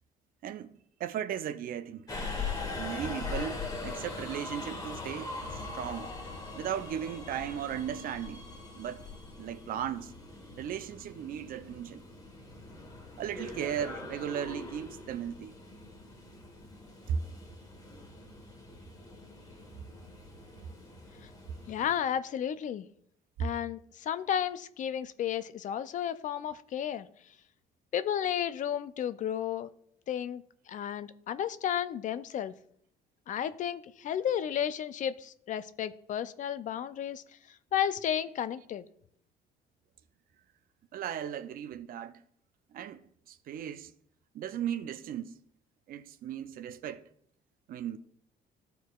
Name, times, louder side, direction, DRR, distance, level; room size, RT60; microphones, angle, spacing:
voice 1, 0.4-2.1 2.7-6.1 6.5-8.4 8.7-9.0 9.4-10.1 10.6-12.0 13.2-15.5 17.1-17.2 23.4-23.5 40.9-42.1 42.7-43.0 43.3-43.9 44.3-45.3 45.9-47.0 47.7-48.0, right 9 dB, 60° right, 0.5 m, -36 dB
Subway metro underground, 2.1-22.0, left 3 dB, 20° left, 1.4 m, -42 dB
voice 2, 21.7-22.9 23.4-27.1 27.9-29.7 30.1-32.5 33.3-38.9, left 9 dB, 50° left, 0.4 m, -33 dB
13.0 x 4.6 x 2.4 m
cardioid pair, 110°, 17 cm